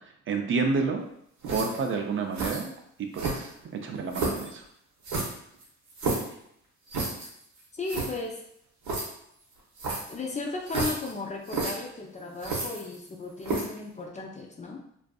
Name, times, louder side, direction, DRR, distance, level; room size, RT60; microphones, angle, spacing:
voice 1, 0.3-1.1 1.5-2.7 3.0-4.6, right 4 dB, 45° right, 4 dB, 0.4 m, -29 dB
sound 1, 1.4-1.9 2.3-2.7 3.1-3.6 4.1-4.5 5.0-6.3 6.9-7.3 7.6-7.7 7.9-8.1 8.8-9.1 9.8-10.2 10.7-11.1 11.5-11.7 12.4-13.1 13.4-13.8, right 3 dB, 75° right, 0.9 m, -30 dB
voice 2, 7.7-8.4 10.1-14.8, left 3 dB, 25° left, 0 dB, 0.4 m, -35 dB
2.6 x 2.4 x 2.3 m, 0.72 s
cardioid pair, 90°, 30 cm